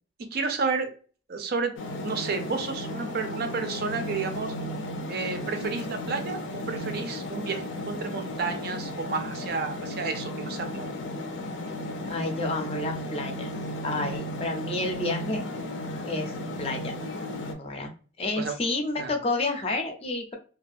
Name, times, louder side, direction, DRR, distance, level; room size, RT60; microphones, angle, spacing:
voice 1, 0.3-0.9 1.3-1.7 2.0-4.5 5.1-10.9 18.4-18.5 19.0-19.1, right 4 dB, 55° right, 6 dB, 0.4 m, -31 dB
sound 1, 1.8-17.5, left 1 dB, 85° left, 0.5 m, -35 dB
voice 2, 12.1-13.5 13.8-15.4 16.0-16.9 17.6-17.9 18.2-20.3, left 2 dB, 30° left, 3 dB, 0.5 m, -30 dB
2.4 x 2.3 x 2.5 m, 0.39 s
head